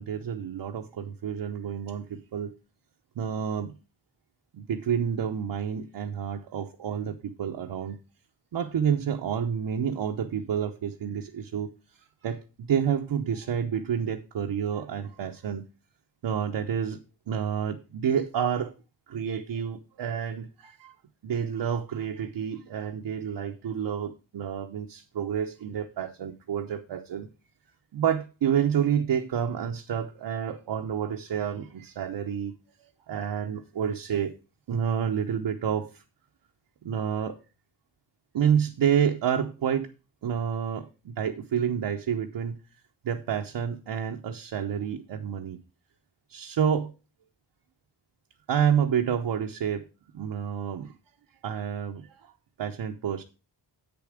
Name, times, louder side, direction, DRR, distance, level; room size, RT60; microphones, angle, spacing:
voice 1, 0.0-2.5 3.2-3.7 4.5-8.0 8.5-11.7 12.2-15.7 16.2-17.0 17.3-18.7 19.1-20.9 21.2-27.3 27.9-32.5 32.8-34.3 34.7-36.0 36.8-37.4 38.3-39.9 40.2-42.6 43.0-45.6 46.3-46.9 48.5-49.8 50.1-50.9 51.4-52.3 52.6-53.2, right 8 dB, 70° right, 0.9 m, -29 dB
8.5 x 7.1 x 4.9 m
wide cardioid pair, 125°, 44 cm